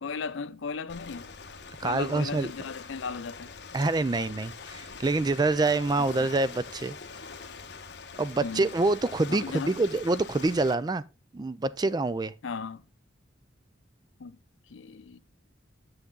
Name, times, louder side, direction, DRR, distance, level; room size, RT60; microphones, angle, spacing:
voice 1, 0.0-1.3 1.8-3.5 6.2-6.3 8.4-8.7 9.3-9.7 12.4-12.8 14.2-14.4 14.7-15.2, left 5 dB, 85° left, 0.5 m, -36 dB
Ocean, 0.9-10.7, left 5 dB, 60° left, 1.1 m, -44 dB
voice 2, 1.8-2.5 3.7-7.0 8.2-11.0 11.3-12.3, right 2 dB, 20° right, 0.3 m, -26 dB
8.4 x 6.6 x 3.8 m
head